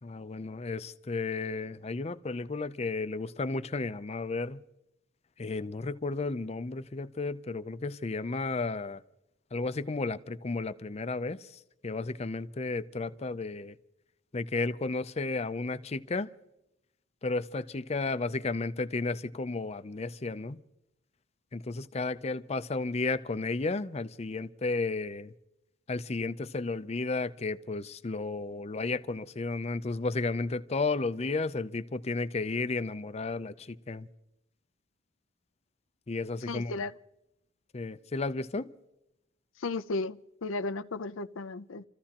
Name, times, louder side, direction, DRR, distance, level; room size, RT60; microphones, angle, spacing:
voice 1, 0.0-4.6 5.4-9.0 9.5-13.8 14.3-16.3 17.2-20.6 21.5-25.3 25.9-34.1 36.1-36.7 37.7-38.7, left 3 dB, 30° left, 0.5 m, -33 dB
voice 2, 36.5-36.9 39.6-41.8, left 3 dB, 85° left, 0.6 m, -34 dB
30.0 x 14.5 x 2.9 m
head